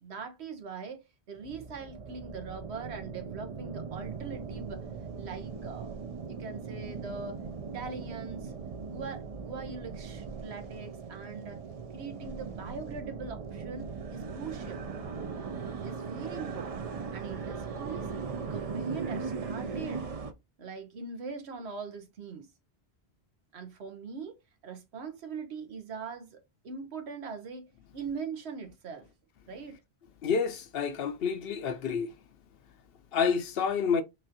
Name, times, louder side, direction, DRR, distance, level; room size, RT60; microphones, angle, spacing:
voice 1, 0.0-4.8 5.2-6.0 6.2-7.4 7.6-8.5 8.8-11.6 11.9-14.8 15.8-16.8 17.1-18.1 18.4-20.1 20.6-22.5 23.5-24.4 24.6-29.1 29.5-29.8, right 5 dB, 85° right, 1.2 m, -41 dB
sound 1, 1.4-20.3, right 5 dB, 50° right, 0.4 m, -39 dB
voice 2, 30.2-32.1 33.1-34.0, left 6 dB, 70° left, 0.8 m, -29 dB
5.9 x 2.6 x 2.7 m
omnidirectional pair, 1.1 m